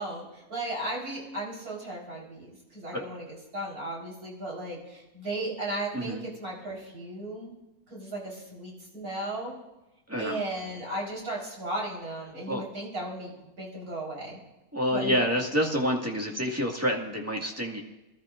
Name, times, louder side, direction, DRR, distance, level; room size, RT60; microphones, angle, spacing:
voice 1, 0.0-7.5 7.9-9.5 10.2-14.4 14.9-15.2, right 1 dB, 75° right, -4 dB, 4.7 m, -36 dB
voice 2, 10.1-10.4 12.5-12.6 14.7-17.8, equal, 10° right, 0 dB, 1.7 m, -28 dB
24.0 x 13.0 x 2.5 m, 1.0 s
omnidirectional pair, 1.6 m